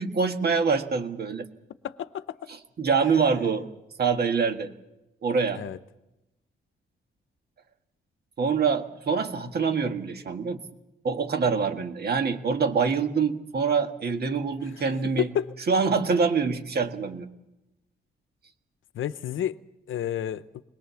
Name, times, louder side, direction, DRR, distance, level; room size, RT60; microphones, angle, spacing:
voice 1, 0.0-1.5 2.5-3.7 4.0-4.7 5.2-5.6 8.4-10.6 11.0-15.3 15.7-17.3, right 5 dB, 50° right, 1.8 m, -25 dB
voice 2, 1.8-2.4 5.6-5.8 15.2-15.5 18.9-19.5 19.9-20.4, left 10 dB, 75° left, 0.8 m, -29 dB
22.0 x 21.0 x 7.0 m
wide cardioid pair, 135°, 21 cm